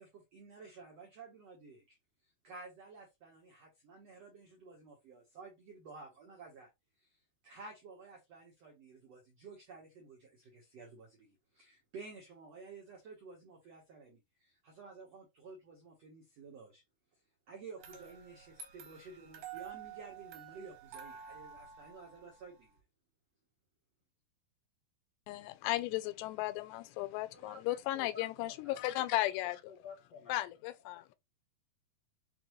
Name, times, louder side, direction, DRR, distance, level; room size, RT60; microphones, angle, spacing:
voice 1, 0.0-2.0 2.4-6.7 7.0-16.8 17.5-22.8, right 4 dB, 85° right, 1.4 m, -52 dB
sound 1, 17.8-22.8, right 8 dB, 70° right, 2.7 m, -50 dB
voice 2, 25.3-29.6 30.3-31.1, left 17 dB, 85° left, 2.7 m, -35 dB
voice 3, 27.3-29.3 29.7-30.5, left 4 dB, 65° left, 1.6 m, -53 dB
6.9 x 2.5 x 3.0 m
omnidirectional pair, 4.8 m